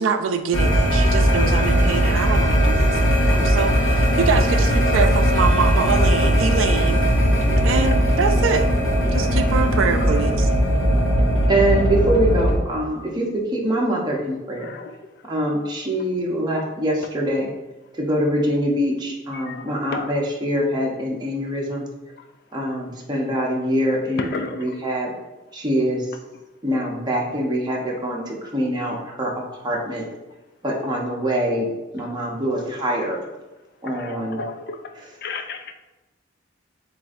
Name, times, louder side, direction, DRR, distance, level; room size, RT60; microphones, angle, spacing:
voice 1, 0.0-7.2 7.6-8.7 9.1-10.5, right 5 dB, 80° right, 0.4 m, -24 dB
sound 1, 0.5-12.6, equal, 80° left, 0.9 m, -18 dB
voice 2, 7.4-7.9 9.0-9.4 10.6-11.2 12.9-13.2 14.6-14.9 15.6-15.7 19.3-20.1 22.2-22.3 24.2-24.7 32.5-32.6 33.8-34.8 35.2-35.7, left 4 dB, 55° left, 0.4 m, -34 dB
voice 3, 11.5-14.7 15.3-17.5 18.0-21.8 22.5-25.1 25.5-26.1 26.6-29.3 29.6-30.1 30.6-31.7 31.9-33.2 33.8-34.4, right 1 dB, 20° right, 0.9 m, -24 dB
7.7 x 2.6 x 2.5 m
head